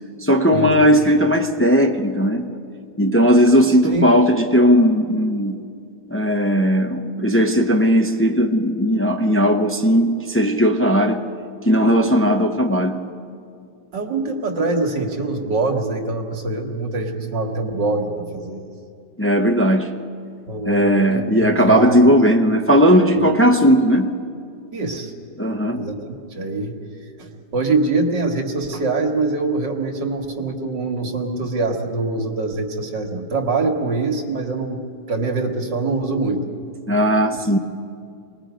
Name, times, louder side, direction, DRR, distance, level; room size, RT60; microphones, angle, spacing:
voice 1, 0.2-2.5 3.0-5.6 6.1-11.2 11.7-13.0 19.2-19.9 20.6-24.1 25.4-25.8 36.9-37.6, equal, 20° left, 3 dB, 0.3 m, -17 dB
voice 2, 13.9-18.7 20.5-22.1 24.7-25.1 25.7-26.8 27.2-34.8 35.1-36.4, right 3 dB, 80° right, 2 dB, 2.5 m, -24 dB
26.5 x 20.0 x 5.1 m, 2.3 s
omnidirectional pair, 1.9 m